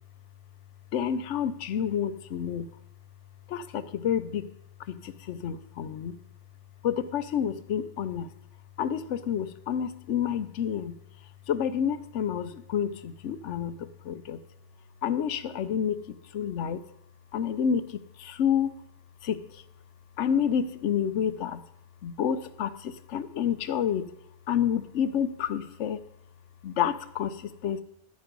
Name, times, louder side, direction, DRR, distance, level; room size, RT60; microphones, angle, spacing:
voice 1, 0.9-2.7 3.5-4.5 4.8-6.2 6.8-8.3 8.8-11.0 11.5-14.4 15.0-16.8 17.3-18.7 19.2-19.6 20.2-21.6 22.0-24.1 24.5-26.0 26.6-27.8, left 8 dB, 75° left, 14 dB, 1.0 m, -29 dB
10.0 x 9.4 x 5.2 m, 0.75 s
omnidirectional pair, 1.3 m